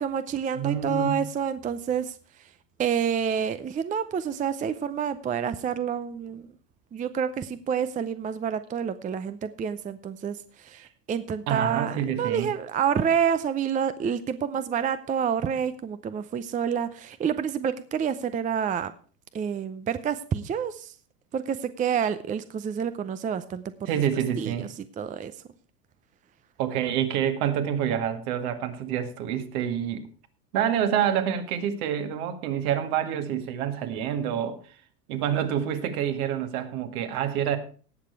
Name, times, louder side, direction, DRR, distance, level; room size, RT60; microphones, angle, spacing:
voice 1, 0.0-2.1 2.8-6.5 6.9-18.9 19.3-20.9 21.3-23.6 24.4-25.3, right 7 dB, 15° right, 13 dB, 0.6 m, -28 dB
voice 2, 0.5-1.2 10.8-10.9 11.5-12.5 23.9-24.7 26.6-30.1 30.5-34.6 35.1-37.6, right 9 dB, 65° right, 7 dB, 2.1 m, -27 dB
18.0 x 6.7 x 4.6 m, 0.39 s
hypercardioid pair, 100°, 48 cm